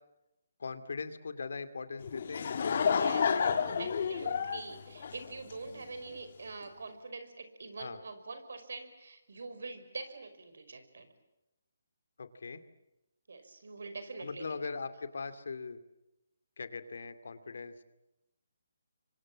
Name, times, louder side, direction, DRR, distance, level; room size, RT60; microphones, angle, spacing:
voice 1, 0.6-4.5 7.8-8.0 12.2-12.6 14.2-15.8 16.6-17.8, left 4 dB, 70° left, 11 dB, 2.4 m, -41 dB
Laughter / Crowd, 2.0-5.8, left 6 dB, 55° left, 1.9 m, -30 dB
voice 2, 3.0-11.1 13.3-14.7, right 3 dB, 70° right, 9 dB, 5.3 m, -45 dB
29.0 x 24.5 x 7.5 m, 0.92 s
hypercardioid pair, 155°, 0 cm